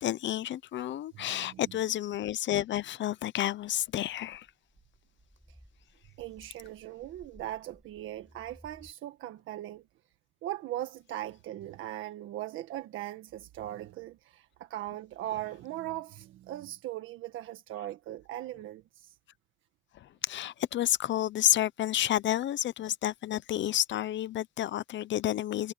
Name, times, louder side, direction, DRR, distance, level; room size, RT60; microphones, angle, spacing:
voice 1, 0.0-4.5 20.0-25.7, left 12 dB, 70° left, 0.8 m, -30 dB
voice 2, 1.1-1.7 6.2-9.8 10.4-19.1, right 14 dB, 90° right, 1.6 m, -39 dB
sound 1, 3.6-8.9, equal, ahead, 6.0 m, -59 dB
cardioid pair, 90°, 20 cm